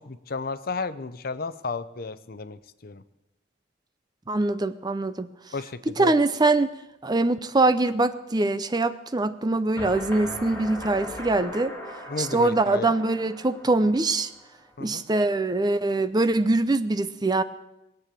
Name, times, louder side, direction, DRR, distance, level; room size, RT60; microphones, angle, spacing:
voice 1, 0.0-3.0 5.5-6.1 12.1-12.9 14.8-15.0, left 3 dB, 50° left, 13 dB, 0.7 m, -33 dB
voice 2, 4.3-5.3 6.0-6.7 7.0-11.7 12.2-14.3 14.8-17.4, right 2 dB, 20° right, 12 dB, 0.6 m, -23 dB
sound 1, 9.8-14.7, left 1 dB, 10° left, 2.8 m, -39 dB
21.0 x 8.5 x 7.5 m, 0.93 s
head